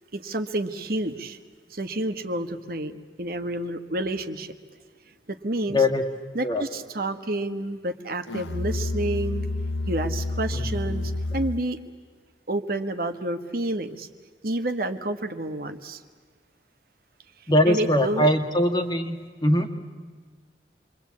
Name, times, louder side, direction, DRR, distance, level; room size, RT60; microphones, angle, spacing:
voice 1, 0.1-1.4 1.7-4.5 5.3-5.8 6.3-9.5 9.9-11.8 12.5-14.1 14.4-16.0 17.7-18.3, right 1 dB, 55° right, 7 dB, 1.4 m, -29 dB
voice 2, 5.7-6.0 6.4-6.7 10.5-11.1 17.5-19.7, left 1 dB, 25° left, 5 dB, 1.9 m, -22 dB
Musical instrument, 8.3-11.8, left 2 dB, 85° left, 0.7 m, -29 dB
28.0 x 23.0 x 8.6 m, 1.5 s
head